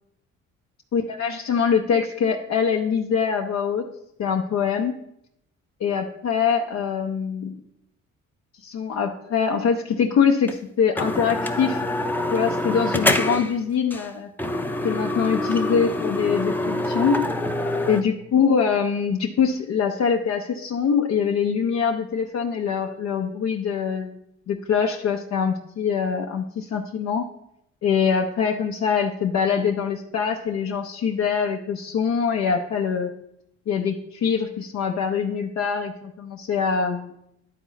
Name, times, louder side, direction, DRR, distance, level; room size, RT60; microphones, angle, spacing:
voice 1, 0.9-3.8 4.2-4.9 5.8-7.5 8.6-11.8 12.3-14.3 14.8-17.2 17.9-24.2 24.5-27.3 27.8-33.1 33.7-37.1, left 6 dB, 60° left, 2 dB, 0.7 m, -23 dB
sound 1, 10.5-10.6 11.0-13.6 13.9-14.1 14.4-18.0, left 1 dB, 5° left, 0.6 m, -25 dB
11.0 x 4.1 x 3.9 m, 0.78 s
cardioid pair, 90°, 30 cm